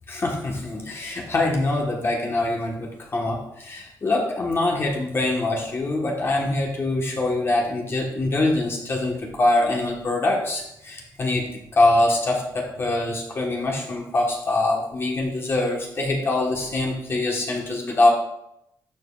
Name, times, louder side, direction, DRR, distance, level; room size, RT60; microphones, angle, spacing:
voice 1, 0.1-11.5 11.7-18.1, left 2 dB, 35° left, -1 dB, 1.4 m, -24 dB
12.0 x 5.1 x 2.4 m, 0.80 s
cardioid pair, 130°, 7 cm